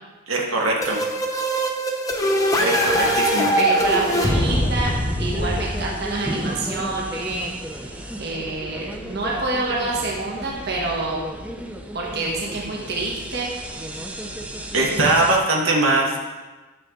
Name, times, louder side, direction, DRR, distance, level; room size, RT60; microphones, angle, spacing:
voice 1, 0.3-1.0 2.6-3.5 14.7-16.2, right 2 dB, 65° right, -1 dB, 1.6 m, -21 dB
sound 1, 0.8-6.5, equal, 15° left, 0.8 m, -22 dB
voice 2, 2.5-3.1 3.6-4.9 5.2-11.2 11.9-13.9, right 2 dB, 50° right, -3 dB, 1.5 m, -28 dB
sound 2, 3.8-15.4, right 1 dB, 5° right, 0.5 m, -34 dB
12.0 x 6.9 x 3.8 m, 1.2 s
head